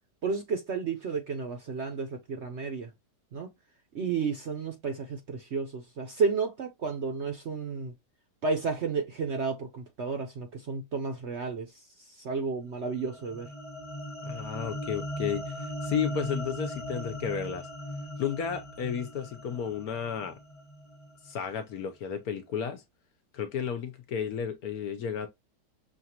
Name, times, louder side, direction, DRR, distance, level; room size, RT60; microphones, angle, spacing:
voice 1, 0.2-2.9 3.3-3.5 3.9-7.9 8.4-11.7 12.1-13.5, right 5 dB, 55° right, 0.8 m, -32 dB
sound 1, 12.9-21.3, equal, 25° left, 0.7 m, -38 dB
voice 2, 14.2-15.6 15.8-17.7 18.2-20.4 21.2-22.8 23.3-25.3, left 7 dB, 65° left, 1.1 m, -33 dB
6.3 x 2.5 x 2.8 m
omnidirectional pair, 1.9 m